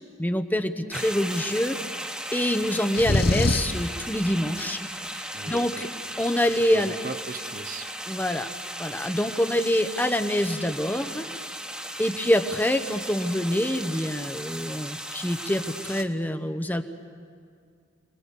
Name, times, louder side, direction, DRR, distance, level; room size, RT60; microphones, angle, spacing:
voice 1, 0.2-1.8 2.3-4.8 5.1-5.9 6.2-7.0 8.1-8.5 8.8-11.3 12.0-16.8, left 1 dB, 10° left, 8 dB, 1.0 m, -26 dB
sound 1, 0.9-16.0, equal, 5° right, 1.4 m, -36 dB
sound 2, 2.9-3.8, left 2 dB, 60° left, 0.9 m, -23 dB
voice 2, 5.3-5.8 6.7-8.2, right 2 dB, 55° right, 9 dB, 1.1 m, -37 dB
30.0 x 20.5 x 8.4 m, 2.3 s
head